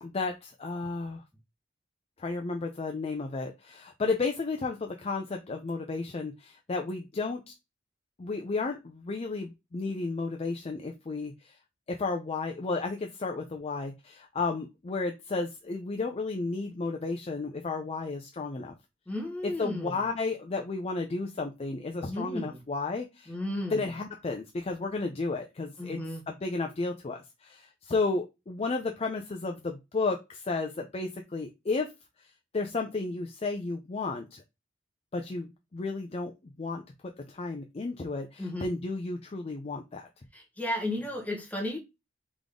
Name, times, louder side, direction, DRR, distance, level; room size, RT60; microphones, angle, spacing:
voice 1, 0.0-1.2 2.2-7.5 8.2-11.3 12.0-18.7 19.6-23.3 23.7-26.0 26.3-31.9 32.5-34.4 35.1-36.3 36.6-36.8 37.3-40.1, left 3 dB, 30° left, 0.5 m, -33 dB
voice 2, 19.1-20.1 22.0-22.6 23.3-24.0 25.8-26.2 38.4-38.7 40.3-41.8, left 1 dB, 10° left, 1.2 m, -34 dB
3.7 x 3.5 x 3.5 m
head